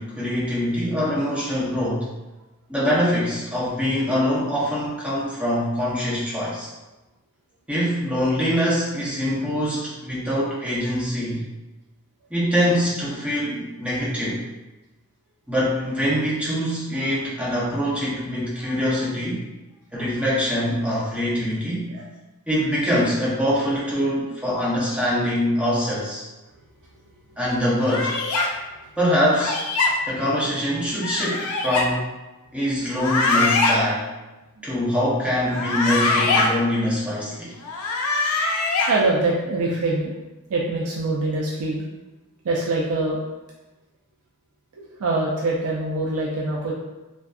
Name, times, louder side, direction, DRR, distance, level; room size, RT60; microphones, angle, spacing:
voice 1, 0.0-2.1 2.7-6.7 7.7-11.4 12.3-14.4 15.5-19.4 19.9-21.9 22.5-26.2 27.4-28.1 29.0-29.6 30.1-32.0 32.5-34.1 34.6-37.5, equal, 5° right, -8 dB, 0.6 m, -24 dB
sound 1, 27.9-28.5 29.3-29.9 31.0-31.9 32.9-33.8 35.4-36.5 37.6-38.9, left 3 dB, 75° left, 0.4 m, -22 dB
voice 2, 38.9-40.1 40.5-41.8 42.4-43.2 44.8-46.7, right 2 dB, 80° right, -4 dB, 0.4 m, -24 dB
2.5 x 2.3 x 2.3 m, 1.1 s
head